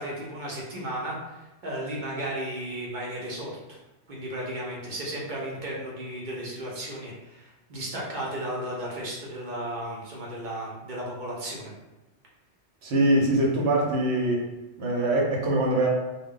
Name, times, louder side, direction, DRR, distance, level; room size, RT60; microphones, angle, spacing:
voice 1, 0.0-3.8 4.1-11.7, right 1 dB, 50° right, -4 dB, 0.7 m, -34 dB
voice 2, 12.8-14.4 14.8-15.9, right 1 dB, 70° right, -1 dB, 0.9 m, -23 dB
2.2 x 2.1 x 3.6 m, 1.0 s
omnidirectional pair, 1.2 m